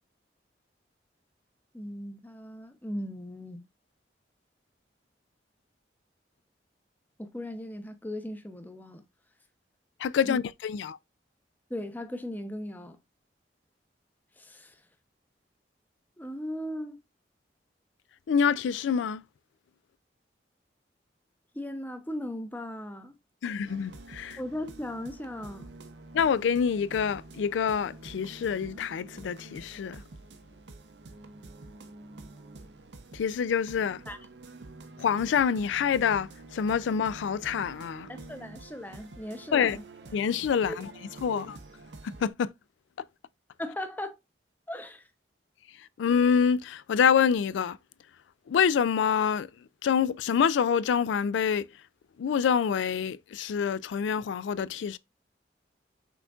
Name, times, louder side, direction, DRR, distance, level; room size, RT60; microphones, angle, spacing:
voice 1, 1.7-3.6 7.2-9.0 10.2-10.4 11.7-13.0 14.4-14.8 16.2-17.0 21.5-23.2 24.4-25.7 34.1-34.2 38.1-39.8 40.7-40.8 41.3-41.4 43.6-44.2 44.7-45.1, left 1 dB, 10° left, 0.6 m, -37 dB
voice 2, 10.0-11.0 18.3-19.2 23.4-24.4 26.1-30.0 33.1-34.0 35.0-38.1 39.5-39.8 40.1-40.9 41.2-41.6 42.0-42.5 46.0-47.8 48.5-49.5 49.8-51.7 52.2-55.0, left 7 dB, 85° left, 0.3 m, -26 dB
sound 1, 23.6-42.3, right 2 dB, 70° right, 0.7 m, -48 dB
5.8 x 3.7 x 2.4 m
head